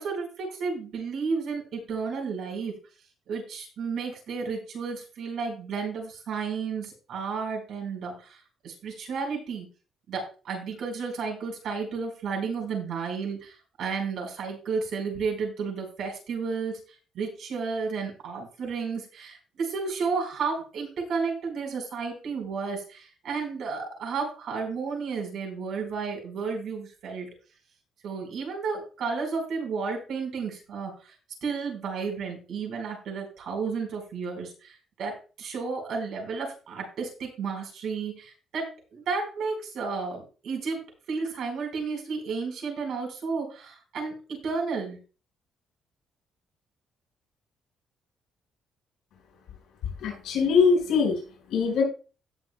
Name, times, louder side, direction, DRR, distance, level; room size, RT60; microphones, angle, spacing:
voice 1, 0.0-2.8 3.3-9.7 10.1-16.8 17.1-27.3 28.0-31.1 31.4-45.0, right 5 dB, 60° right, 1 dB, 4.8 m, -32 dB
voice 2, 50.0-51.2 51.5-51.8, left 5 dB, 80° left, 0 dB, 5.1 m, -22 dB
17.5 x 6.5 x 2.3 m, 0.36 s
cardioid pair, 155°, 0 cm